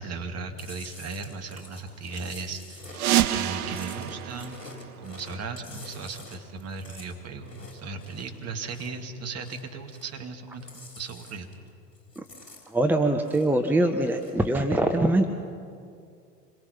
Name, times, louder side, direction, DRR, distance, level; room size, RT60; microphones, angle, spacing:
voice 1, 0.0-4.7 5.0-11.5, right 4 dB, 30° right, 4 dB, 2.3 m, -37 dB
Chewing mastication, 0.6-9.0 9.3-10.3 10.5-11.7 12.0-13.6 14.0-14.5, left 2 dB, 80° left, 3.9 m, -48 dB
sound 1, 2.9-5.5, right 13 dB, 65° right, 0.9 m, -28 dB
voice 2, 12.7-15.3, right 1 dB, 5° right, 5 dB, 1.1 m, -23 dB
27.0 x 22.5 x 5.8 m, 2.4 s
figure-of-eight pair, 75°, 48 cm